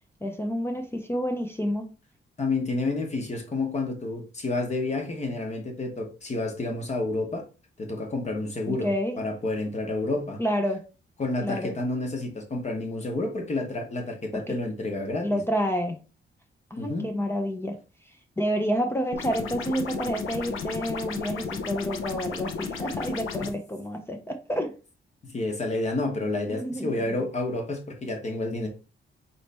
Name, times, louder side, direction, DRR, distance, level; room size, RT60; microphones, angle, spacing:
voice 1, 0.2-1.9 8.7-9.2 10.4-10.9 11.4-11.8 14.3-14.6 15.2-16.0 16.7-17.8 18.4-24.7 26.5-27.1, equal, 10° left, 0.4 m, -29 dB
voice 2, 2.4-7.4 7.8-8.9 9.2-10.4 11.2-15.4 16.8-17.0 25.2-28.7, left 2 dB, 35° left, 0.9 m, -29 dB
sound 1, 19.1-23.5, left 5 dB, 75° left, 0.6 m, -34 dB
4.1 x 3.1 x 3.2 m
wide cardioid pair, 170°, 21 cm